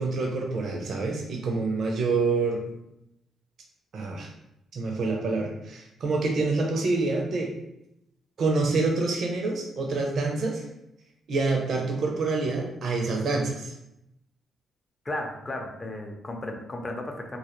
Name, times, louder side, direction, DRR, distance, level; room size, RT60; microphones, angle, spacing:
voice 1, 0.0-2.6 3.9-4.3 4.7-7.5 8.4-10.6 11.3-13.7, right 3 dB, 65° right, 1 dB, 0.4 m, -27 dB
voice 2, 15.0-17.4, left 1 dB, 30° left, 2 dB, 0.5 m, -34 dB
2.1 x 2.0 x 2.9 m, 0.84 s
supercardioid pair, 60°, 0 cm